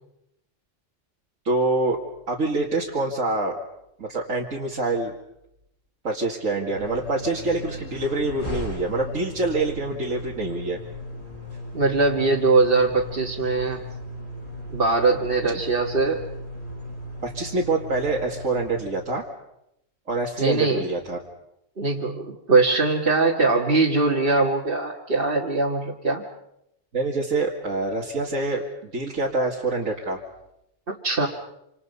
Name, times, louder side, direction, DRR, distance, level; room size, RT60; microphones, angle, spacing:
voice 1, 1.4-2.0 2.3-3.5 4.0-5.1 6.0-10.8 15.5-15.6 17.2-19.3 20.1-21.2 26.9-30.2, right 2 dB, 90° right, -3 dB, 2.6 m, -26 dB
sound 1, 6.7-18.9, left 1 dB, 40° left, 5.9 m, -37 dB
voice 2, 11.7-13.8 14.7-16.2 20.4-20.9 21.8-26.3 30.9-31.3, right 3 dB, 45° right, -2 dB, 1.9 m, -21 dB
27.5 x 27.0 x 5.5 m, 0.82 s
omnidirectional pair, 1.3 m